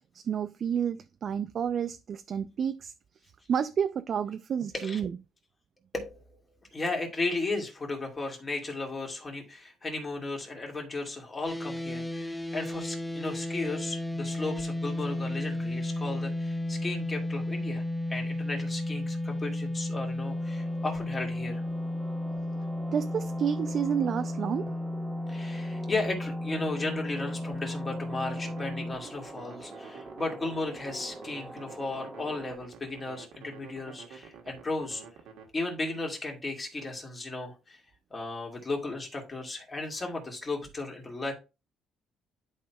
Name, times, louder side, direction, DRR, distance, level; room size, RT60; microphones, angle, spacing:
voice 1, 0.2-2.9 3.5-5.2 22.9-24.7, right 8 dB, 50° right, 0.3 m, -30 dB
voice 2, 5.9-6.4 6.7-17.8 18.1-21.6 25.3-35.0 35.5-37.8 38.1-41.3, left 2 dB, 25° left, 2.2 m, -35 dB
sound 1, 11.5-29.0, left 1 dB, 5° left, 0.6 m, -33 dB
sound 2, 20.2-32.6, right 2 dB, 10° right, 1.3 m, -46 dB
sound 3, 28.1-35.5, right 7 dB, 85° right, 1.3 m, -49 dB
11.0 x 4.3 x 2.3 m
cardioid pair, 110°, 0 cm